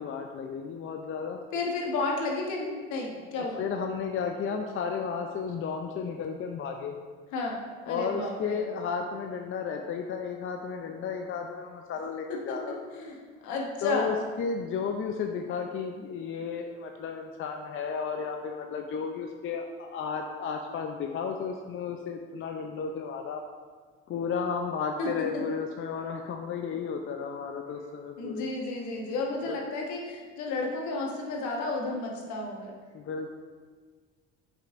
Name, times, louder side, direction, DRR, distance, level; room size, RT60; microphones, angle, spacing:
voice 1, 0.0-1.4 3.3-7.0 7.9-12.8 13.8-23.4 24.1-28.5 29.5-29.6 32.9-33.3, left 6 dB, 45° left, 4 dB, 0.5 m, -33 dB
voice 2, 1.5-3.6 7.3-7.6 7.9-8.6 12.3-12.6 12.9-13.2 13.4-14.2 25.0-25.1 28.2-32.7, left 3 dB, 70° left, 0 dB, 1.3 m, -32 dB
7.3 x 5.3 x 2.5 m, 1.5 s
supercardioid pair, 75°, 30 cm